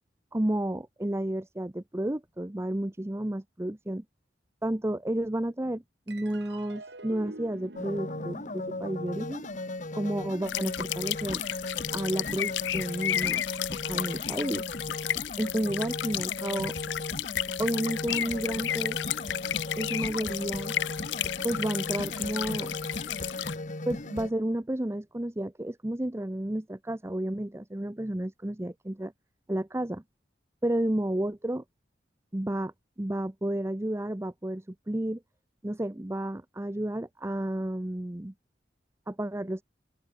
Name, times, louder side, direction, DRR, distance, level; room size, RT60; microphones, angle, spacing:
voice 1, 0.3-4.0 4.6-9.4 9.9-11.5 11.9-13.4 13.7-14.7 15.4-16.8 17.6-19.0 19.8-20.7 21.4-22.7 23.9-29.1 29.5-30.0 30.6-31.6 32.3-32.7 33.0-35.2 35.6-38.3 39.1-39.6, right 1 dB, 15° right, 0.6 m, -31 dB
sound 1, 6.1-12.8, right 2 dB, 70° right, 3.8 m, -49 dB
sound 2, 7.8-24.3, left 2 dB, 40° left, 1.6 m, -37 dB
sound 3, 10.5-23.5, left 12 dB, 75° left, 0.4 m, -33 dB
open air
head